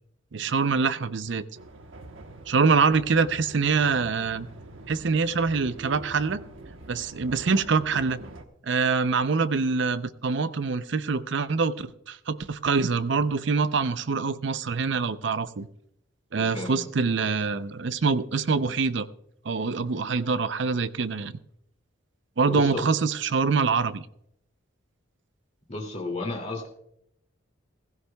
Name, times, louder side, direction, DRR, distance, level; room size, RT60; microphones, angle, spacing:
voice 1, 0.3-1.4 2.5-4.5 4.9-6.4 6.9-8.2 8.6-15.7 16.3-19.1 19.4-21.3 22.4-24.1, right 4 dB, 60° right, 13 dB, 0.5 m, -25 dB
sound 1, 1.5-8.4, right 2 dB, 75° right, 1.1 m, -44 dB
voice 2, 16.4-16.8 22.5-22.8 25.7-26.7, left 2 dB, 35° left, 1 dB, 2.4 m, -33 dB
16.0 x 16.0 x 2.3 m, 0.74 s
head